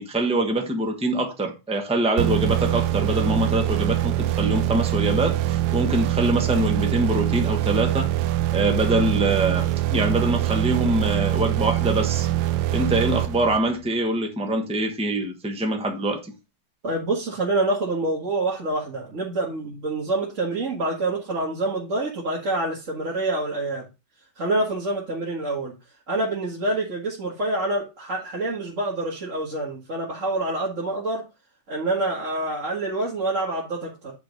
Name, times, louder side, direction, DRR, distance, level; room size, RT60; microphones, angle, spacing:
voice 1, 0.0-8.1 8.5-12.3 12.7-16.3, right 1 dB, 5° right, 0.9 m, -24 dB
sound 1, 2.2-13.9, right 14 dB, 75° right, 1.2 m, -24 dB
voice 2, 16.8-23.9 24.4-25.7 26.1-31.2 31.7-34.1, right 2 dB, 40° right, 1.9 m, -26 dB
9.3 x 4.0 x 5.1 m
omnidirectional pair, 2.1 m